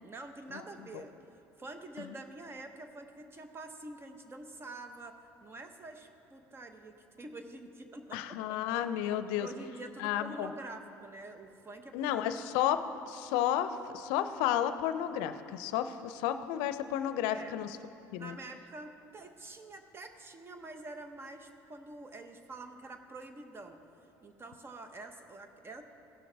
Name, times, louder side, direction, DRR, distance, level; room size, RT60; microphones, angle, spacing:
voice 1, 0.0-1.1 1.6-8.4 9.3-12.2 17.3-17.6 18.2-23.8 24.2-25.8, right 2 dB, 30° right, 7 dB, 0.9 m, -47 dB
voice 2, 8.1-9.5 10.0-10.5 11.9-17.7 18.1-18.4, left 11 dB, 80° left, 10 dB, 0.5 m, -32 dB
16.0 x 6.3 x 3.4 m, 2.8 s
supercardioid pair, 80°, 8 cm